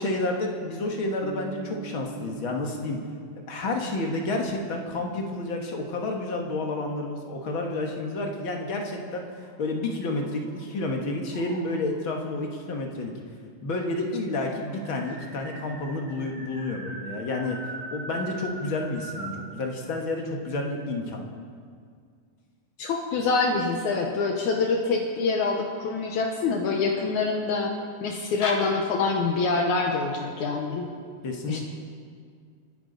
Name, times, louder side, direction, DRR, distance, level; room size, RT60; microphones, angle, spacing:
voice 1, 0.0-3.0 3.5-9.3 9.6-13.1 13.6-17.6 17.9-21.2 31.2-31.6, left 2 dB, 50° left, 1 dB, 1.8 m, -30 dB
sound 1, 1.2-5.5, right 3 dB, ahead, 3.2 m, -44 dB
sound 2, 9.3-10.8 11.3-12.0 13.0-13.1 13.3-13.4 13.7-19.5, right 2 dB, 30° right, 1.6 m, -41 dB
voice 2, 22.8-27.7 28.0-30.9 31.5-31.6, left 4 dB, 70° left, 2 dB, 2.3 m, -25 dB
27.5 x 10.5 x 4.0 m, 2.1 s
omnidirectional pair, 3.7 m